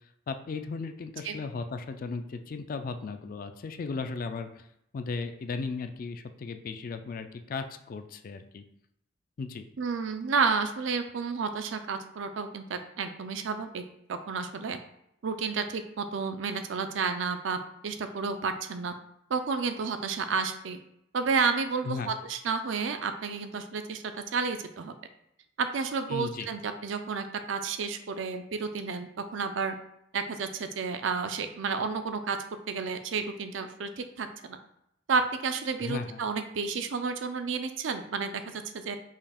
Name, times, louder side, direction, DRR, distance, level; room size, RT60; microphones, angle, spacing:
voice 1, 0.3-4.7 4.9-8.6 9.4-9.7 21.8-22.1 26.1-26.5 35.8-36.2, left 4 dB, 45° left, 8 dB, 0.3 m, -36 dB
voice 2, 9.8-14.8 15.2-18.9 19.3-20.8 21.1-24.9 25.6-29.7 30.1-32.4 32.7-34.6 35.1-39.0, right 5 dB, 70° right, 8 dB, 0.4 m, -31 dB
5.5 x 2.4 x 3.4 m, 0.77 s
head